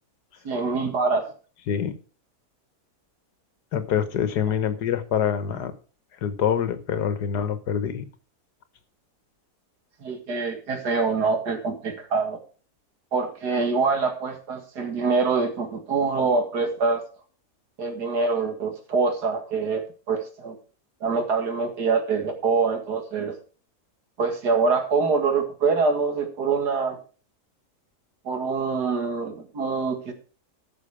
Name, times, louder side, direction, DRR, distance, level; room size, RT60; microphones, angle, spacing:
voice 1, 0.4-1.3 10.0-12.4 13.1-17.0 17.8-20.6 21.0-23.4 24.2-27.0 28.2-30.1, right 4 dB, 80° right, 2.4 m, -25 dB
voice 2, 3.7-5.7 6.2-8.0, left 8 dB, 85° left, 1.7 m, -25 dB
14.0 x 6.3 x 4.9 m
omnidirectional pair, 1.7 m